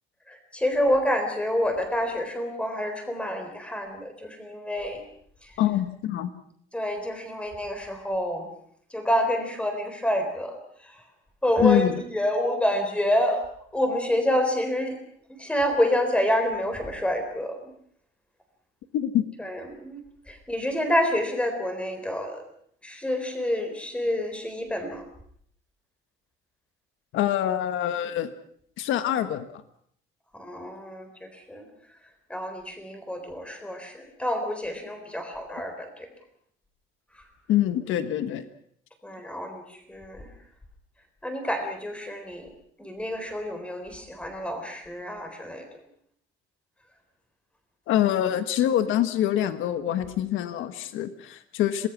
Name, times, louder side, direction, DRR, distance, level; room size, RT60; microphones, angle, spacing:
voice 1, 0.3-5.0 5.4-5.5 6.7-8.5 8.9-10.6 10.8-11.0 11.4-15.0 15.4-17.7 19.4-20.0 20.3-22.4 22.8-25.0 30.3-31.7 32.3-36.1 39.0-40.3 41.2-42.5 42.8-45.7, left 1 dB, 5° left, 6 dB, 4.0 m, -28 dB
voice 2, 5.6-6.3 11.6-11.9 18.9-19.2 27.1-28.3 28.8-29.5 37.5-38.4 47.9-51.9, left 11 dB, 70° left, 10 dB, 1.5 m, -25 dB
27.5 x 19.5 x 6.1 m, 0.64 s
cardioid pair, 175°, 21 cm